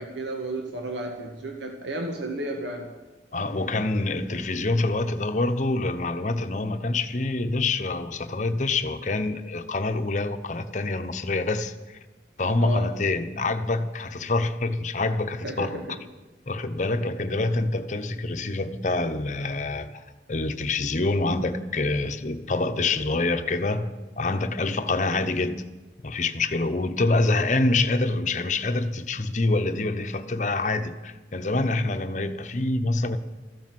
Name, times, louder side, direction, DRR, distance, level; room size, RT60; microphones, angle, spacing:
voice 1, 0.0-2.9 12.6-12.9 15.4-16.0, right 1 dB, 85° right, 1.5 m, -33 dB
voice 2, 3.3-12.0 12.4-15.8 16.5-20.0 20.3-25.6 26.0-33.2, left 2 dB, 45° left, 0.9 m, -26 dB
14.0 x 12.0 x 7.7 m
head